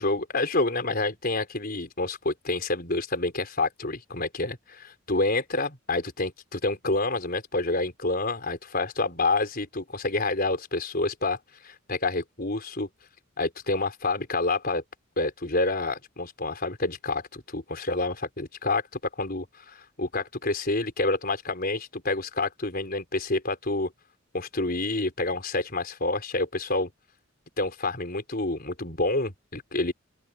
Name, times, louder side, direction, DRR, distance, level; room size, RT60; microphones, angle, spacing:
voice 1, 0.0-11.4 11.6-12.9 13.4-14.8 15.2-23.9 24.3-26.9 27.6-29.9, left 2 dB, 45° left, 4.8 m, -28 dB
open air
head